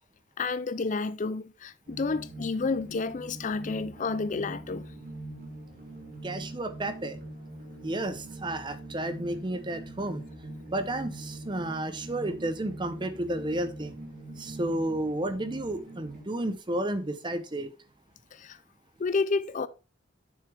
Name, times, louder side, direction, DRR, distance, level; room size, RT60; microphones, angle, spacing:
voice 1, 0.4-4.8 18.3-18.6 19.0-19.7, left 4 dB, 40° left, 0.4 m, -30 dB
sound 1, 1.9-16.2, right 1 dB, 50° right, 2.1 m, -43 dB
voice 2, 6.2-7.2 7.8-10.2 10.7-14.0 14.4-17.7, right 1 dB, 25° right, 0.7 m, -32 dB
7.0 x 6.5 x 3.4 m
head